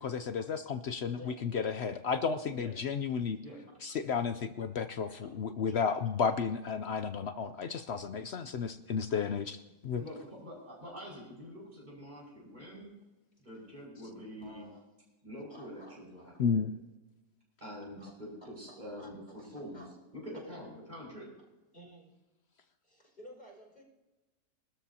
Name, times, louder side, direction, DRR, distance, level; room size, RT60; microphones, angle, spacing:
voice 1, 0.0-3.4 3.8-10.0 16.4-16.7, left 6 dB, 70° left, 9 dB, 0.6 m, -33 dB
voice 2, 1.0-1.7 5.2-5.3 5.7-5.8 7.7-7.8 9.7-9.8 11.6-11.7 14.4-14.8 15.5-16.4 18.0-18.1 18.7-19.9 21.7-22.1 22.8-23.8, equal, 25° left, -2 dB, 5.8 m, -55 dB
voice 3, 10.0-12.9 13.4-14.6 15.2-16.7 17.6-19.2 19.5-19.8 20.1-21.3, equal, 25° right, -3 dB, 5.7 m, -46 dB
23.0 x 13.0 x 2.8 m, 1.1 s
omnidirectional pair, 1.8 m